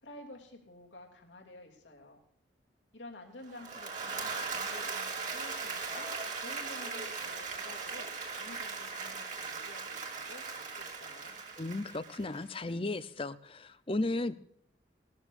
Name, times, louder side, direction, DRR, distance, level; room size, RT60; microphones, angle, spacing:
voice 1, 0.0-2.2 2.9-6.1 6.4-8.1 8.4-11.4, left 2 dB, 85° left, 0 dB, 3.1 m, -51 dB
Applause / Crowd, 3.5-12.6, right 4 dB, 45° right, 3.0 m, -39 dB
voice 2, 11.6-14.3, left 2 dB, 30° left, 13 dB, 0.7 m, -35 dB
20.0 x 13.5 x 2.6 m, 0.67 s
head